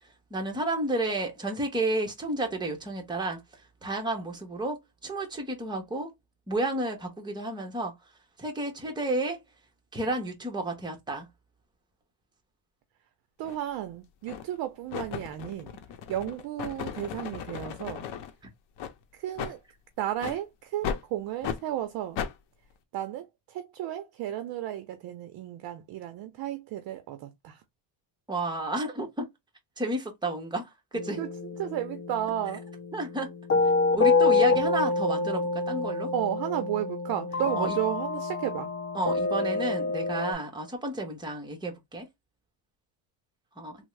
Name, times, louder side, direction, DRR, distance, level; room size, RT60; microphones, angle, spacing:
voice 1, 0.3-3.4 3.8-6.1 6.5-7.9 8.4-9.4 9.9-11.3 28.3-29.3 29.8-31.2 32.9-33.3 33.9-36.1 37.6-37.8 38.9-42.1 43.6-43.8, right 2 dB, 10° right, 0.8 m, -31 dB
sound 1, 13.4-13.6 14.3-14.6 14.9-18.3 18.8-18.9 19.4-19.5 20.2-20.4 20.8-21.0 21.4-21.6 22.2-22.3, left 8 dB, 70° left, 0.7 m, -35 dB
voice 2, 13.4-15.7 16.1-18.1 19.1-19.6 20.0-22.2 22.9-27.6 31.1-32.7 36.1-38.7, right 12 dB, 55° right, 0.6 m, -33 dB
sound 2, 30.9-40.3, left 3 dB, 30° left, 0.6 m, -27 dB
3.4 x 2.1 x 3.1 m
cardioid pair, 155°, 44 cm